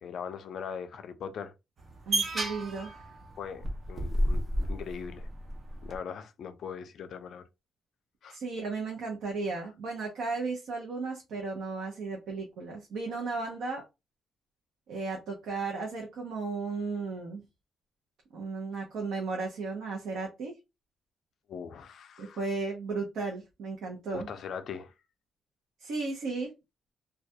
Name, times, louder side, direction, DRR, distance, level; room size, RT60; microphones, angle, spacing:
voice 1, 0.0-1.5 3.4-4.4 4.7-5.3 5.8-7.4 8.2-8.4 21.5-22.4 24.1-24.9, left 7 dB, 55° left, 0.3 m, -40 dB
sound 1, 1.8-6.0, right 1 dB, 30° right, 0.5 m, -32 dB
voice 2, 2.1-3.1 8.3-13.8 14.9-17.4 18.3-20.5 22.2-24.3 25.8-26.5, right 4 dB, 75° right, 0.6 m, -35 dB
2.2 x 2.2 x 2.7 m
cardioid pair, 180°, 0 cm